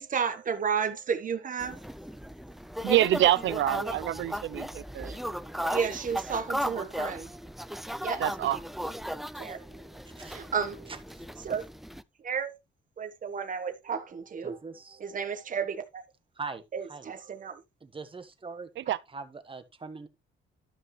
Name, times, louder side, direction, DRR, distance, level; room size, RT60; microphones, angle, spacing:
voice 1, 0.0-1.8 3.8-4.0 5.0-7.3 8.0-8.2 9.4-9.8 10.2-10.9 11.4-11.6 12.2-12.5 13.0-14.6 15.0-16.0 16.7-17.6, right 6 dB, 40° right, 1.3 m, -32 dB
sound 1, 1.6-12.0, equal, ahead, 0.5 m, -36 dB
voice 2, 2.8-5.1 8.2-8.6 18.8-19.0, right 13 dB, 70° right, 0.6 m, -26 dB
voice 3, 14.4-15.0 16.4-16.6 16.9-17.1 17.8-18.7 19.1-20.1, right 4 dB, 25° right, 1.5 m, -41 dB
12.5 x 5.5 x 3.2 m
cardioid pair, 90°, 20 cm